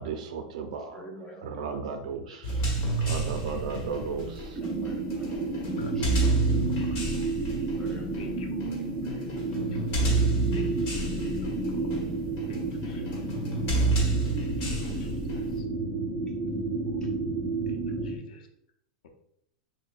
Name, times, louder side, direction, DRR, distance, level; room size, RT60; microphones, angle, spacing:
voice 1, 0.0-1.0 1.4-2.5 3.0-4.6, right 5 dB, 70° right, 6 dB, 0.5 m, -34 dB
voice 2, 0.9-3.1 4.3-5.3 5.9-6.6 7.8-8.4 9.0-10.2 17.0-17.1, equal, 10° left, 0 dB, 0.8 m, -49 dB
sound 1, 2.4-15.6, right 3 dB, 40° left, 1.3 m, -30 dB
sound 2, 4.6-18.2, right 2 dB, 15° right, 0.6 m, -31 dB
voice 3, 5.8-6.2 6.9-7.1 8.2-8.8 9.3-9.4 9.7-9.8 10.5-10.9 11.2-12.0 12.5-13.1 14.4-15.4 16.8-17.0 17.7-18.5, left 3 dB, 80° left, 4 dB, 0.7 m, -49 dB
6.0 x 2.2 x 2.5 m, 0.74 s
supercardioid pair, 140°, 4 cm